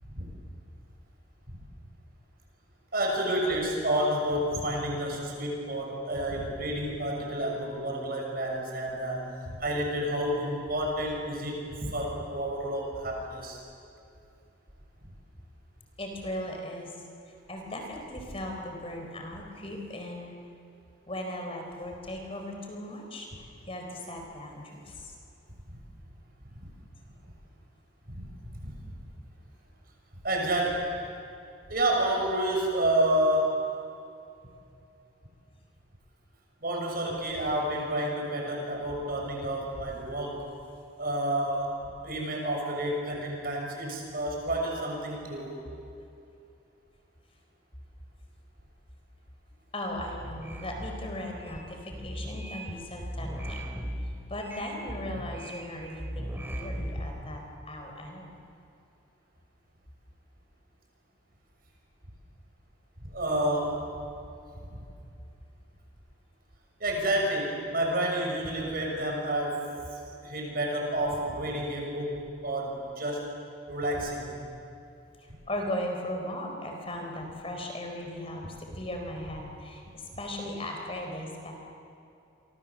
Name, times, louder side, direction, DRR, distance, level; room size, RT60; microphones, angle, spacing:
voice 1, 2.9-13.6 25.7-25.8 26.6-26.7 28.0-28.3 28.6-29.0 30.2-30.9 31.7-33.7 36.6-40.4 41.0-45.6 63.0-63.8 64.6-64.8 66.8-69.7 70.2-73.3 73.7-74.3, right 1 dB, 50° right, 0 dB, 6.5 m, -30 dB
voice 2, 16.0-17.0 17.2-20.3 21.1-25.1 49.7-53.7 54.3-58.4 75.2-81.5, left 1 dB, 30° left, 2 dB, 4.4 m, -38 dB
sound 1, 50.1-51.6 51.9-52.7 53.0-55.7 56.0-57.1, equal, 10° right, 3.1 m, -37 dB
29.5 x 25.0 x 7.5 m, 2.6 s
head